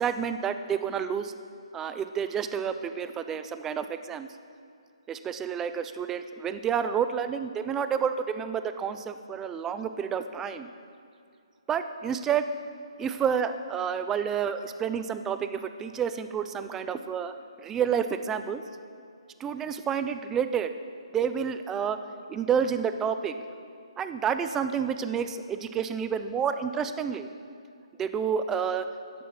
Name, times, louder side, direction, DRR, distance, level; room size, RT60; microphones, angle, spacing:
voice 1, 0.0-1.3 1.7-4.3 5.1-10.7 11.7-12.4 13.0-17.3 17.6-18.6 19.4-20.7 21.1-22.0 22.3-23.3 24.0-27.3 28.0-28.9, right 7 dB, 10° right, 10 dB, 0.3 m, -29 dB
11.0 x 6.9 x 4.6 m, 2.5 s
figure-of-eight pair, 135°, 3 cm